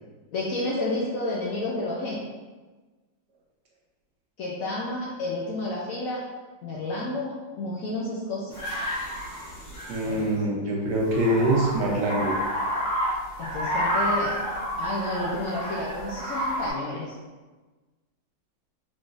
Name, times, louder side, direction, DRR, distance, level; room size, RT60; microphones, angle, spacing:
voice 1, 0.3-2.2 4.4-6.3 6.6-8.8 10.0-10.3 13.4-14.4 14.8-17.1, left 2 dB, 70° left, -4 dB, 0.8 m, -31 dB
sound 1, 8.5-10.2 10.9-16.7, equal, 85° left, 2.1 m, -29 dB
voice 2, 9.9-12.4, right 1 dB, 75° right, -2 dB, 1.3 m, -24 dB
3.8 x 3.4 x 2.5 m, 1.3 s
omnidirectional pair, 1.9 m